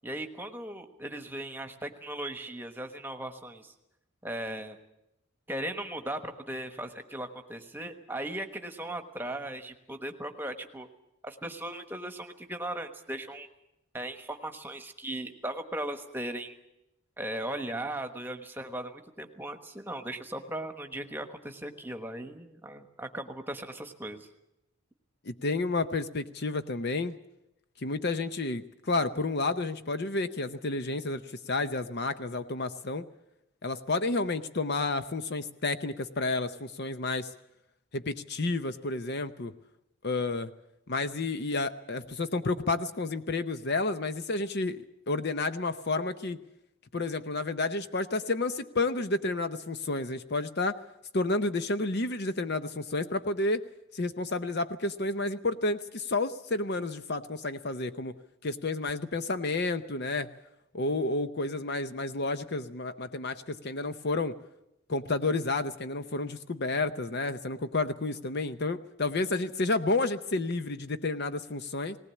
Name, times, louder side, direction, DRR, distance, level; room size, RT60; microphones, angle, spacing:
voice 1, 0.0-3.7 4.2-4.8 5.5-10.9 11.2-13.5 13.9-16.6 17.2-24.3, right 1 dB, 10° right, 6 dB, 1.3 m, -38 dB
voice 2, 25.3-27.1 27.8-31.2 31.5-33.0 33.6-37.3 37.9-39.5 40.0-40.5 40.9-46.4 46.9-50.8 51.1-53.6 53.9-58.1 58.4-60.3 60.7-64.4 64.9-72.0, left 3 dB, 50° left, 11 dB, 0.7 m, -30 dB
19.0 x 19.0 x 8.4 m, 0.86 s
head